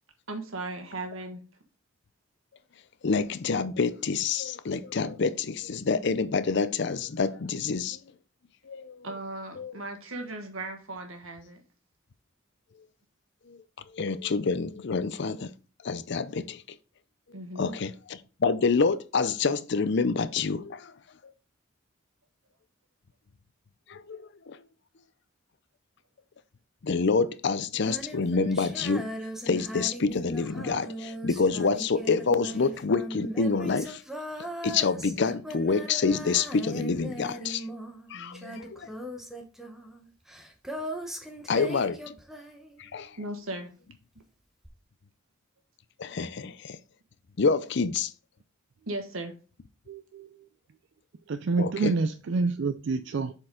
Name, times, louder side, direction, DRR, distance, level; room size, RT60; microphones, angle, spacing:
voice 1, 0.3-1.4 9.0-11.6 17.3-17.8 38.1-38.6 43.2-43.7 48.9-49.3, right 2 dB, 85° right, 1.5 m, -37 dB
voice 2, 3.0-8.0 8.7-9.1 9.6-9.7 13.5-13.6 13.9-15.5 15.8-16.6 17.6-20.9 23.9-24.6 26.8-29.1 29.5-34.0 34.6-37.6 38.1-38.9 41.5-42.0 42.8-43.1 46.0-46.8 47.4-48.1 51.6-51.9, left 4 dB, 55° left, 0.5 m, -27 dB
Female singing, 27.7-43.1 44.6-44.7, right 1 dB, ahead, 0.9 m, -39 dB
voice 3, 49.9-50.5 51.3-53.3, right 3 dB, 60° right, 0.4 m, -28 dB
7.5 x 4.5 x 3.7 m
head